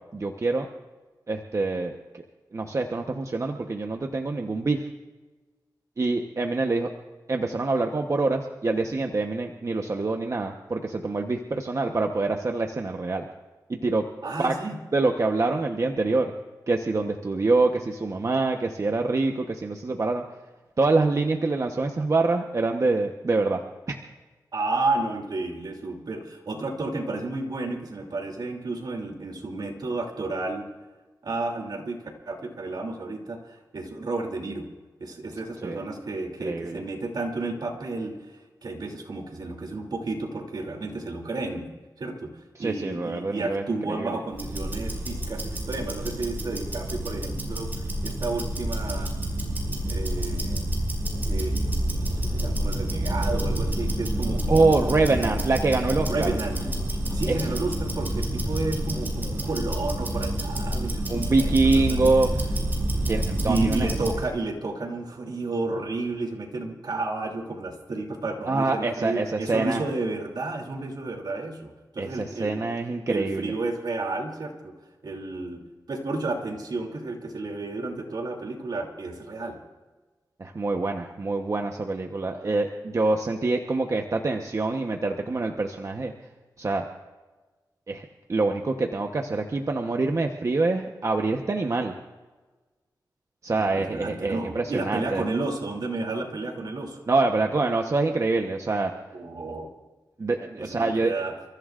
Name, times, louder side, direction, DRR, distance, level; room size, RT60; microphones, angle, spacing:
voice 1, 0.1-0.7 1.3-2.2 2.5-4.8 6.0-6.9 7.3-13.3 13.7-14.0 14.4-14.5 14.9-16.3 16.7-20.2 20.8-23.6 23.9-24.0 35.6-35.8 36.4-36.8 42.6-44.2 54.5-56.3 57.3-57.4 61.1-62.3 63.1-63.9 68.5-69.8 72.0-73.5 80.4-86.1 86.6-86.8 87.9-91.9 93.4-95.2 97.1-98.9 100.2-101.2, right 3 dB, 45° right, 3 dB, 1.0 m, -25 dB
voice 2, 14.2-14.8 24.5-30.7 31.2-34.6 35.0-38.1 38.6-41.7 42.0-42.3 42.6-49.2 49.9-50.7 51.3-51.5 52.1-55.4 56.0-56.6 57.1-62.1 63.5-72.6 73.1-74.7 75.0-75.6 75.9-79.6 93.6-97.0 99.1-99.7 100.6-101.3, right 2 dB, 70° right, 2 dB, 2.9 m, -32 dB
Tick-tock, 44.3-64.2, right 1 dB, 25° right, 5.7 m, -28 dB
30.0 x 15.0 x 2.5 m, 1.3 s
wide cardioid pair, 85°, 7 cm